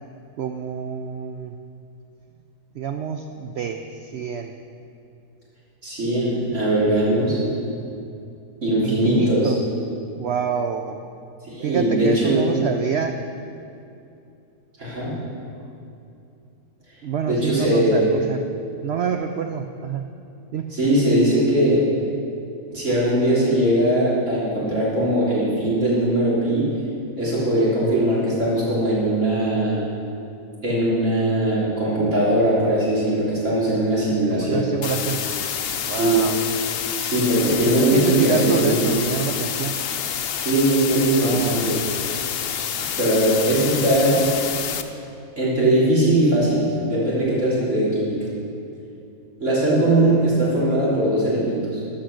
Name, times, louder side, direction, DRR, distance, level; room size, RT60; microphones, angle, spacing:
voice 1, 0.4-1.6 2.7-4.6 8.8-9.6 10.1-11.0 11.6-13.2 17.0-18.4 18.8-20.1 20.5-20.7 34.3-35.2 35.9-36.4 37.7-39.8 41.2-41.7, right 7 dB, 90° right, 6 dB, 0.5 m, -27 dB
voice 2, 5.8-7.4 8.6-9.5 11.5-12.5 14.8-15.2 17.3-18.1 20.7-21.9 22.7-26.8 27.2-29.8 30.6-34.7 36.0-36.3 37.0-38.7 40.5-41.8 43.0-44.2 45.4-48.2 49.4-51.8, right 1 dB, 50° right, -8 dB, 3.6 m, -20 dB
sound 1, 34.8-44.8, left 8 dB, 80° left, 0.5 m, -28 dB
13.0 x 5.9 x 6.4 m, 2.7 s
omnidirectional pair, 1.7 m